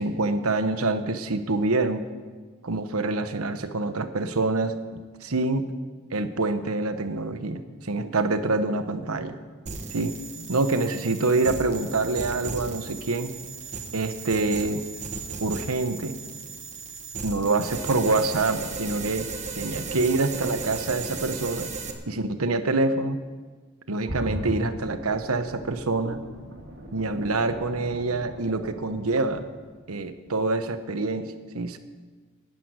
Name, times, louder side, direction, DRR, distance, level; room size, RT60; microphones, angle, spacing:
voice 1, 0.0-2.0 2.6-4.7 5.2-5.6 6.1-9.4 9.9-10.1 10.5-13.3 13.9-14.8 15.4-16.2 17.2-19.3 19.5-21.7 22.1-23.2 23.9-26.2 26.9-29.4 29.9-31.8, right 3 dB, 90° right, 10 dB, 1.1 m, -26 dB
sound 1, 9.7-21.9, right 4 dB, 35° right, 1.2 m, -36 dB
sound 2, 24.1-29.9 30.3-30.4, equal, 55° right, 2.1 m, -38 dB
11.0 x 10.5 x 9.5 m, 1.5 s
head